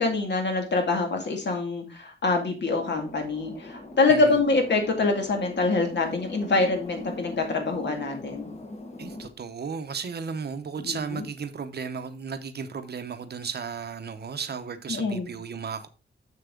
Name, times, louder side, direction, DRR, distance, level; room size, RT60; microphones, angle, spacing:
voice 1, 0.0-8.5 10.8-11.2 14.9-15.3, left 3 dB, 60° left, 2.2 m, -25 dB
sound 1, 2.7-9.3, left 2 dB, 35° left, 1.4 m, -41 dB
voice 2, 9.0-15.9, right 6 dB, 55° right, 0.8 m, -34 dB
6.8 x 6.7 x 3.8 m
wide cardioid pair, 175°, 20 cm